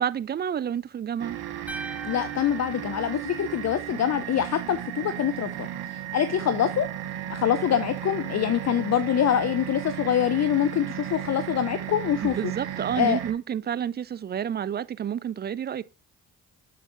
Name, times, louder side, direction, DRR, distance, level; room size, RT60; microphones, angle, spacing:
voice 1, 0.0-1.4 12.2-15.8, right 9 dB, 25° right, 0.3 m, -29 dB
sound 1, 1.2-13.3, right 11 dB, 70° right, 1.0 m, -35 dB
sound 2, 1.7-3.9, right 3 dB, 5° right, 0.8 m, -41 dB
voice 2, 2.0-6.9 7.3-12.5 12.9-13.2, left 9 dB, 40° left, 0.6 m, -25 dB
7.5 x 6.9 x 2.6 m
hypercardioid pair, 45°, 41 cm